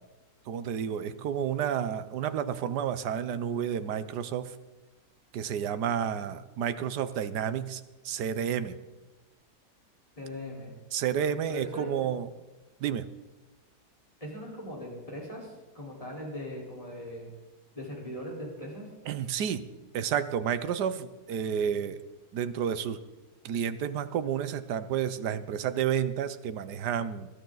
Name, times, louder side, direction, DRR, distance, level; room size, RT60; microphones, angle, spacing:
voice 1, 0.5-4.5 5.3-8.7 10.9-12.3 12.8-13.1 19.1-19.6 19.9-22.0 22.3-23.0 23.4-27.3, right 8 dB, 70° right, 12 dB, 1.3 m, -30 dB
voice 2, 10.2-10.7 11.5-12.1 14.2-17.3 17.7-18.9, left 1 dB, 20° left, -3 dB, 4.4 m, -40 dB
20.5 x 12.5 x 4.0 m, 1.1 s
omnidirectional pair, 1.9 m